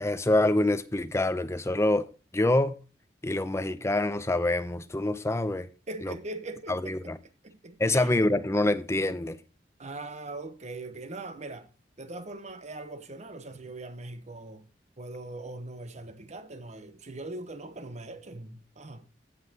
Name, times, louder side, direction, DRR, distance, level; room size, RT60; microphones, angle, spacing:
voice 1, 0.0-2.1 2.3-2.8 3.2-5.7 6.0-6.1 6.7-7.2 7.8-9.4, left 2 dB, 15° left, 0.6 m, -26 dB
voice 2, 5.9-7.1 7.4-8.1 9.8-11.7 12.0-14.7 15.0-19.1, right 2 dB, 40° right, 0.9 m, -41 dB
16.0 x 5.5 x 2.8 m
head